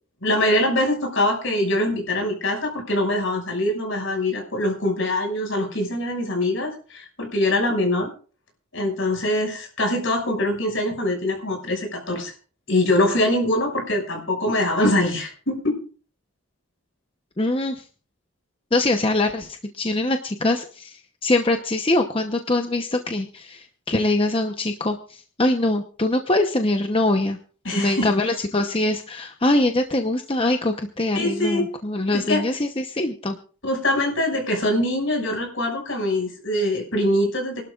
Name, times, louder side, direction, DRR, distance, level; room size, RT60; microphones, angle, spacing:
voice 1, 0.2-8.1 8.7-12.3 12.7-15.8 27.6-28.1 31.1-31.7 32.1-32.4 33.6-37.6, left 1 dB, 60° left, 2 dB, 6.1 m, -23 dB
voice 2, 17.4-17.8 18.7-27.4 27.7-33.4, left 2 dB, 25° left, 5 dB, 0.9 m, -23 dB
28.0 x 12.0 x 2.5 m, 0.40 s
head